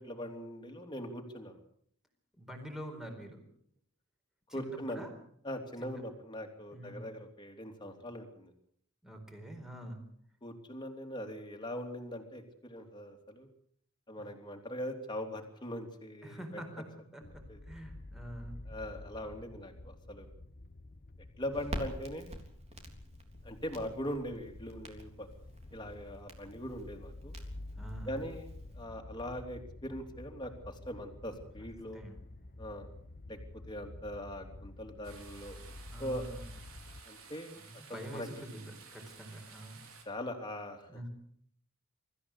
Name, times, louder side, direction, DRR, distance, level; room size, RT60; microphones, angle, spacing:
voice 1, 0.0-1.6 4.5-5.0 5.4-8.5 10.4-13.5 14.1-16.6 17.5-17.6 18.7-20.3 21.4-22.3 23.4-25.3 25.7-27.3 28.0-28.5 28.7-32.0 32.6-32.9 33.3-33.4 33.7-35.6 36.0-36.4 37.0-37.5 37.9-38.3 40.1-40.9, equal, 20° left, 3 dB, 3.3 m, -41 dB
voice 2, 2.3-3.4 4.5-5.1 5.8-6.0 6.7-7.1 9.0-10.0 14.2-14.3 16.2-16.9 17.1-18.6 27.7-28.2 31.6-31.7 31.9-32.2 35.9-36.5 37.5-39.8 40.9-41.1, right 1 dB, ahead, 4 dB, 4.5 m, -46 dB
sound 1, 17.2-37.0, left 2 dB, 40° left, 1.0 m, -49 dB
Crackle, 21.5-28.8, equal, 30° right, 3.6 m, -47 dB
sound 2, 35.0-40.1, right 5 dB, 70° right, 4.4 m, -54 dB
24.5 x 14.0 x 8.4 m, 0.66 s
head